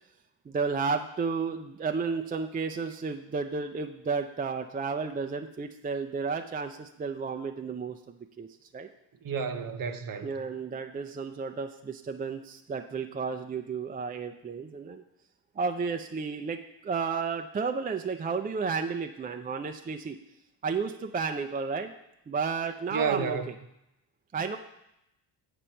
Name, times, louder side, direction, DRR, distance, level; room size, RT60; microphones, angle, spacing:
voice 1, 0.5-8.5 8.7-8.9 10.2-15.0 15.6-20.2 20.6-21.9 22.3-23.5 24.3-24.6, right 5 dB, 20° right, 6 dB, 0.4 m, -32 dB
voice 2, 9.2-10.3 22.9-23.5, right 6 dB, 45° right, 8 dB, 0.8 m, -30 dB
8.5 x 5.2 x 4.4 m, 0.84 s
cardioid pair, 85°, 46 cm